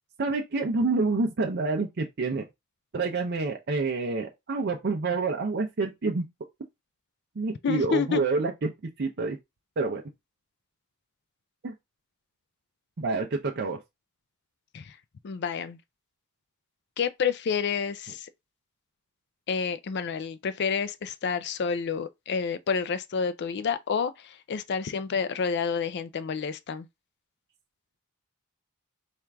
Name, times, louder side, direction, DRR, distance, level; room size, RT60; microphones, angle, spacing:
voice 1, 0.2-2.4 2.9-6.2 7.4-8.7 9.0-9.4 9.8-10.0 11.6-11.7 13.0-13.8, right 3 dB, 50° right, 0.5 m, -27 dB
voice 2, 7.6-8.2 14.7-14.9 15.2-15.8 17.0-18.3 19.5-26.9, left 6 dB, 55° left, 0.4 m, -29 dB
4.3 x 2.5 x 3.4 m
head